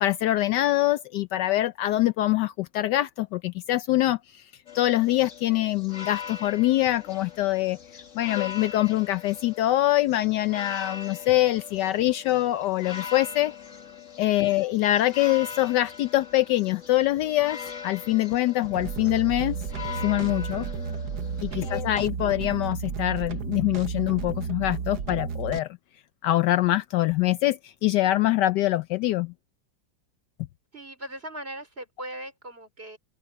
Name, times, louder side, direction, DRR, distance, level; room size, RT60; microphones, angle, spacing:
voice 1, 0.0-4.4 4.7-7.8 8.1-13.5 14.2-17.6 17.8-19.6 20.0-20.7 21.4-25.8 26.2-29.3, left 15 dB, 75° left, 1.1 m, -24 dB
sound 1, 4.7-21.8, left 7 dB, 40° left, 1.9 m, -41 dB
voice 2, 8.2-8.5 14.2-14.6 21.5-21.9 30.7-33.0, right 1 dB, 30° right, 4.5 m, -40 dB
sound 2, 18.6-25.6, right 6 dB, 65° right, 1.6 m, -33 dB
open air
omnidirectional pair, 2.0 m